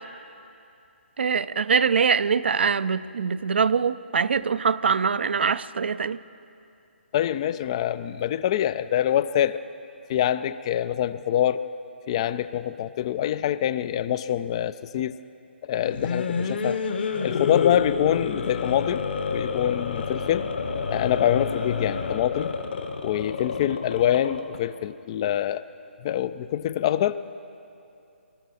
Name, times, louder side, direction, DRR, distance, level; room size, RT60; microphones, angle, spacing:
voice 1, 1.2-6.2, right 6 dB, 60° right, 0.4 m, -23 dB
voice 2, 7.1-9.6 10.1-11.6 12.1-15.1 15.6-16.8 17.2-20.5 20.9-22.5 23.0-25.7 26.0-27.3, left 11 dB, 30° left, 0.3 m, -25 dB
sound 1, 15.8-24.6, left 5 dB, 55° left, 1.3 m, -29 dB
24.5 x 12.5 x 4.1 m
figure-of-eight pair, 140°, 7 cm